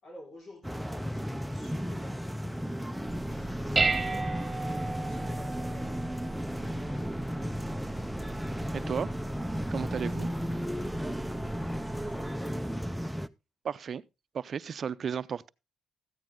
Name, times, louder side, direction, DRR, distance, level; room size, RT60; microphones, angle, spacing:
voice 1, 0.0-4.5 5.0-6.1 11.7-12.8, left 1 dB, 55° left, 4.7 m, -52 dB
sound 1, 0.6-13.3, equal, ahead, 0.5 m, -34 dB
Dishes pots and pans, 3.1-12.3, right 4 dB, 20° right, 1.6 m, -36 dB
voice 2, 8.7-9.1 9.7-10.3 13.6-14.0 14.3-15.5, right 7 dB, 50° right, 0.5 m, -34 dB
14.5 x 9.1 x 3.7 m
cardioid pair, 85°, 0 cm